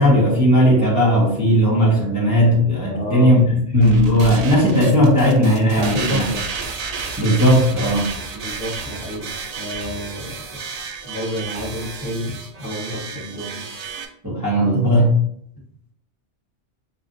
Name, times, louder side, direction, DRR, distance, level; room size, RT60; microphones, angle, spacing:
voice 1, 0.0-6.2 7.2-8.1 14.2-15.1, equal, 15° right, -7 dB, 1.0 m, -16 dB
voice 2, 2.9-3.4 5.8-6.4 8.3-10.3 11.0-13.6, equal, 45° left, -5 dB, 1.4 m, -29 dB
sound 1, 3.8-14.1, right 4 dB, 80° right, 0.3 m, -31 dB
5.5 x 2.4 x 2.6 m, 0.68 s
omnidirectional pair, 1.2 m